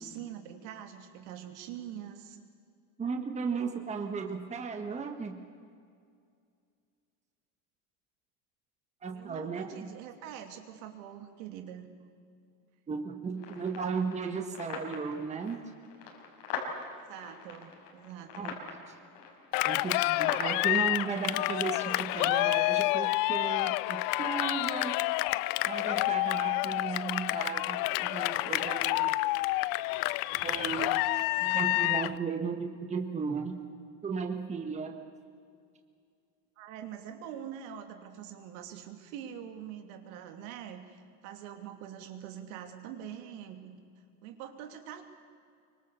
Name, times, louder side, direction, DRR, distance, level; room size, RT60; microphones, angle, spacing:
voice 1, 0.0-2.4 9.1-11.9 17.1-18.6 36.6-43.8 44.2-45.0, right 9 dB, 75° right, 6 dB, 3.0 m, -44 dB
voice 2, 3.0-5.4 9.0-9.9 12.9-15.6 18.4-18.5 19.6-24.9 25.6-29.2 30.4-31.1 31.4-33.6 34.0-35.0, right 5 dB, 15° right, 4 dB, 1.5 m, -35 dB
sound 1, 13.4-22.4, left 5 dB, 85° left, 5.0 m, -42 dB
Cheering, 19.5-32.2, left 20 dB, 55° left, 0.6 m, -29 dB
25.0 x 24.5 x 7.0 m, 2.3 s
cardioid pair, 155°, 42 cm